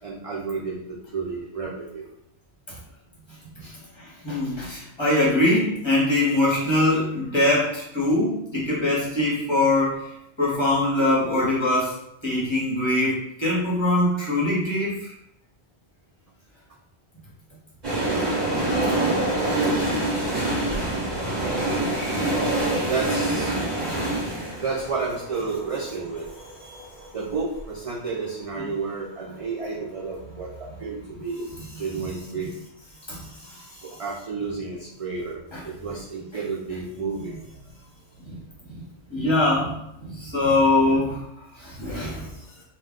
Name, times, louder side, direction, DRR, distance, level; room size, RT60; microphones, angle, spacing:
voice 1, 0.0-2.0 3.6-3.8 22.7-23.9 24.6-26.3 27.1-31.5 31.8-32.5 33.8-37.6 40.2-40.3 40.8-40.9 42.0-42.3, right 4 dB, 65° right, -4 dB, 0.3 m, -31 dB
voice 2, 4.0-10.1 10.4-12.0 12.2-15.1 22.1-22.3 23.8-23.9 26.6-26.8 28.6-28.7 33.1-33.9 35.5-35.6 38.2-38.4 38.7-38.8 39.1-41.2 41.5-42.3, left 1 dB, 25° left, -7 dB, 0.9 m, -23 dB
sound 1, 17.8-27.6 27.9-28.0, right 2 dB, 40° right, 1.2 m, -26 dB
2.4 x 2.2 x 3.5 m, 0.79 s
omnidirectional pair, 1.1 m